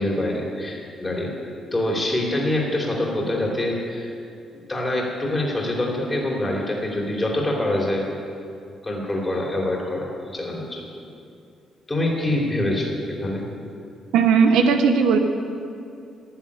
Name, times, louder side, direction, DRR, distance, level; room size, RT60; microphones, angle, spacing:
voice 1, 0.0-1.3 1.7-4.1 4.7-8.0 8.8-10.9 11.9-13.4, left 1 dB, 20° left, -2 dB, 3.0 m, -25 dB
voice 2, 14.1-15.2, right 6 dB, 85° right, 5 dB, 1.0 m, -17 dB
11.5 x 7.1 x 9.8 m, 2.5 s
cardioid pair, 90°, 0 cm